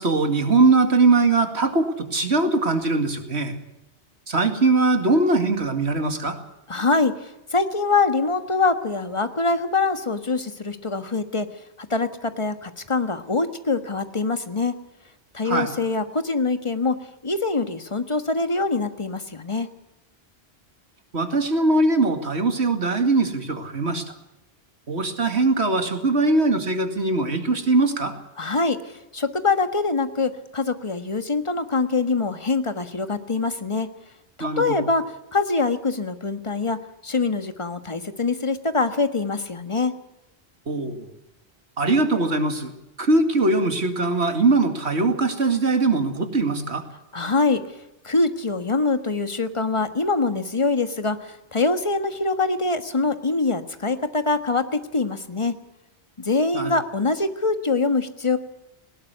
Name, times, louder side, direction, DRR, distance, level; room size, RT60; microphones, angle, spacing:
voice 1, 0.0-3.6 4.3-6.4 15.4-15.7 21.1-24.0 24.9-28.1 34.4-34.9 40.7-41.1 41.8-42.7 43.0-46.8 56.5-56.8, right 3 dB, 75° right, 7 dB, 2.6 m, -21 dB
voice 2, 6.7-7.1 7.5-11.5 11.8-14.7 15.3-16.9 17.2-19.7 28.4-28.8 29.1-33.9 34.4-35.0 35.3-36.8 37.0-39.9 47.1-47.6 48.0-55.5 56.2-58.4, left 3 dB, 30° left, 9 dB, 1.5 m, -24 dB
19.5 x 18.0 x 8.1 m, 0.92 s
omnidirectional pair, 1.1 m